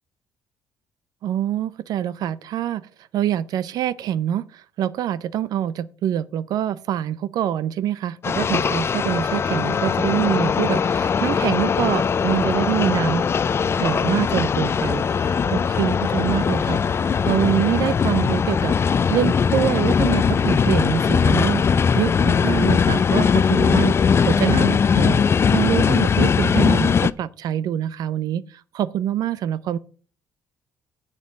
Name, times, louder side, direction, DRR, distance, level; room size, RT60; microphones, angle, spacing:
voice 1, 1.2-2.9 3.1-13.2 13.8-21.6 21.9-28.4 28.7-29.8, right 11 dB, 70° right, 0.5 m, -25 dB
sound 1, 8.2-27.1, left 6 dB, 40° left, 0.5 m, -20 dB
7.6 x 6.2 x 7.0 m
supercardioid pair, 75°, 7 cm